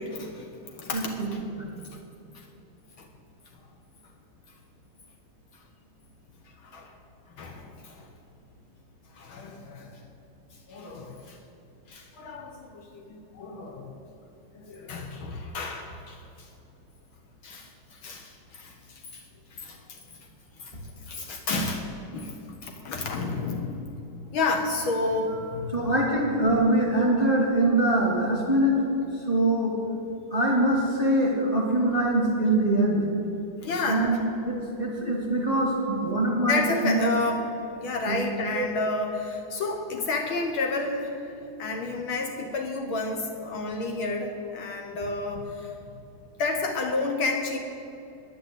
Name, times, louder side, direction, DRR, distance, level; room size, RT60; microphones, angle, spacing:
voice 1, 0.0-1.4 3.0-3.1 6.6-6.9 7.4-8.1 9.2-10.0 10.7-11.4 11.9-13.9 14.5-16.2 17.4-19.2 19.5-19.8 20.6-20.7 21.1-21.8 22.1-22.3 22.6-24.0 24.3-25.9 33.6-34.1 36.5-37.5 37.8-41.2 41.6-45.7 46.4-47.6, left 3 dB, 75° left, 2 dB, 1.9 m, -31 dB
voice 2, 0.9-1.7 25.7-28.8 29.1-29.8 30.3-33.0 33.8-34.2 34.4-37.1 38.1-38.2 38.5-38.7, right 1 dB, 20° left, -3 dB, 2.7 m, -24 dB
10.5 x 10.0 x 8.2 m, 2.9 s
omnidirectional pair, 2.3 m